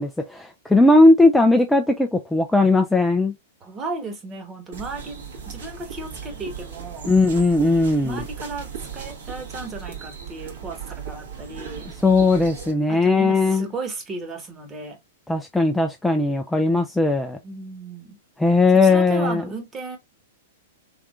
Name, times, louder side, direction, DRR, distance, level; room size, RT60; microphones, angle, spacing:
voice 1, 0.0-3.3 7.1-8.2 12.0-13.7 15.3-17.4 18.4-19.4, left 2 dB, 5° left, 0.5 m, -18 dB
voice 2, 3.6-7.1 8.0-11.9 12.9-15.0 17.4-18.2 18.8-20.0, right 3 dB, 25° right, 1.3 m, -34 dB
sound 1, 4.7-12.7, right 7 dB, 70° right, 1.6 m, -37 dB
3.5 x 3.4 x 2.5 m
figure-of-eight pair, 105°, 0 cm